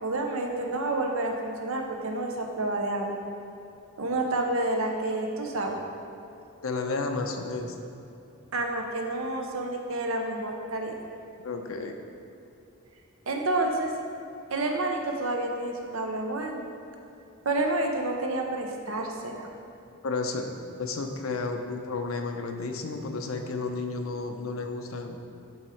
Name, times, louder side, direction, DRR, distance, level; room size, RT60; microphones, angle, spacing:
voice 1, 0.0-3.1 4.0-5.8 8.5-11.0 13.3-13.9 14.5-16.6 17.4-19.5, right 2 dB, 80° right, 2 dB, 0.8 m, -29 dB
voice 2, 6.6-7.8 11.4-12.0 20.0-20.5 20.8-25.2, left 3 dB, 80° left, 4 dB, 0.7 m, -32 dB
10.5 x 3.6 x 4.5 m, 2.8 s
head